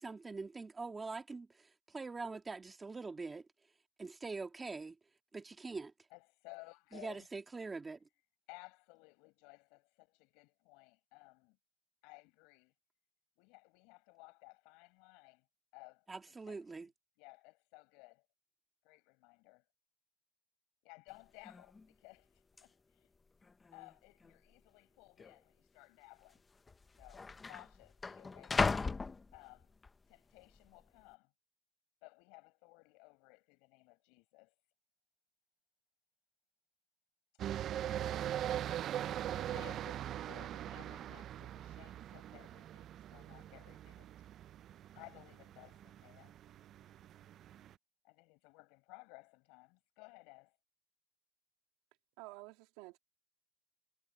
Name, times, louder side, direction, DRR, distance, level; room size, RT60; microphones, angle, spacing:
voice 1, 0.0-3.5 4.0-5.0 5.3-5.9 6.9-8.1 16.1-16.9, right 4 dB, 20° right, 2.3 m, -44 dB
voice 2, 6.1-7.3 8.5-11.6 12.0-12.7 13.4-15.5 15.7-16.9 17.2-18.3 18.8-19.6 20.8-23.1 23.7-26.4 27.0-28.8 29.3-29.7 30.1-31.3 32.0-34.5 37.6-38.4 39.3-44.1 44.9-46.3 48.0-50.6, left 29 dB, 85° left, 7.4 m, -58 dB
sound 1, 21.1-21.2 21.4-21.9 22.6-22.7 23.4-23.9 24.2-24.3 25.2-25.3 26.3-26.4 26.7-29.9 30.4-30.8, left 4 dB, 20° left, 0.8 m, -37 dB
sound 2, 37.4-47.7, right 11 dB, 50° right, 0.4 m, -42 dB
voice 3, 52.2-53.0, right 21 dB, 90° right, 2.3 m, -51 dB
cardioid pair, 130°, 0 cm